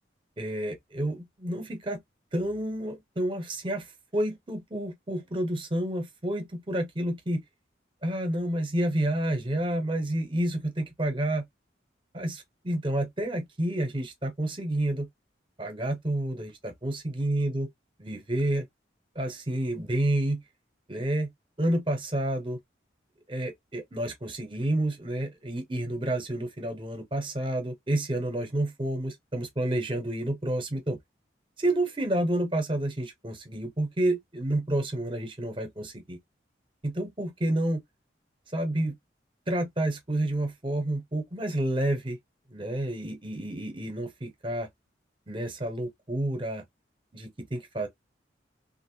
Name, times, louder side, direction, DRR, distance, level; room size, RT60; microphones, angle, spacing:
voice 1, 0.4-2.0 2.3-7.4 8.0-11.5 12.1-15.1 15.6-17.7 18.0-18.6 19.1-20.4 20.9-21.3 21.6-22.6 23.3-31.0 31.6-36.2 36.8-37.8 38.5-38.9 39.5-42.2 42.5-44.7 45.3-46.6 47.1-47.9, right 1 dB, 30° right, 0.9 m, -29 dB
3.1 x 2.6 x 3.1 m
head